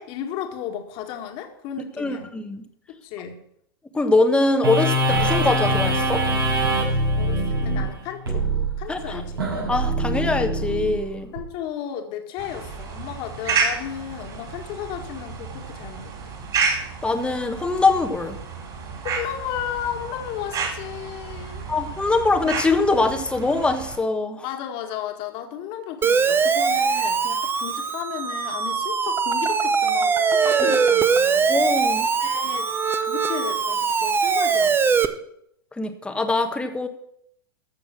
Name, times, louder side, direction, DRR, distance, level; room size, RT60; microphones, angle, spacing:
voice 1, 0.0-2.3 2.9-3.3 7.2-8.5 8.8-9.5 11.3-16.4 19.0-21.7 24.4-31.5 32.2-32.7 33.1-34.8, left 9 dB, 45° left, 4 dB, 1.9 m, -34 dB
voice 2, 2.0-2.6 3.9-6.2 8.9-9.2 9.7-11.3 17.0-18.4 21.7-24.4 30.6-30.7 31.4-32.1 35.8-36.9, left 3 dB, 10° left, 7 dB, 1.2 m, -23 dB
sound 1, 4.6-11.4, right 1 dB, 80° right, 6.3 m, -23 dB
sound 2, 12.4-24.0, right 5 dB, 35° right, 4.0 m, -31 dB
Siren, 26.0-35.1, right 5 dB, 15° right, 0.8 m, -21 dB
14.0 x 6.9 x 6.2 m, 0.73 s
hypercardioid pair, 100°, 12 cm